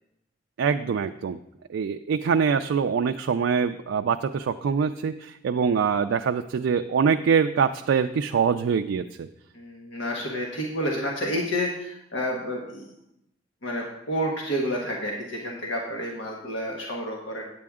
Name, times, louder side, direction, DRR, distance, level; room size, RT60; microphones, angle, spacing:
voice 1, 0.6-1.4 1.7-9.3, right 6 dB, 85° right, 6 dB, 0.3 m, -24 dB
voice 2, 9.5-12.9 13.6-17.4, equal, 80° left, -1 dB, 1.3 m, -30 dB
8.7 x 8.4 x 3.6 m, 0.82 s
head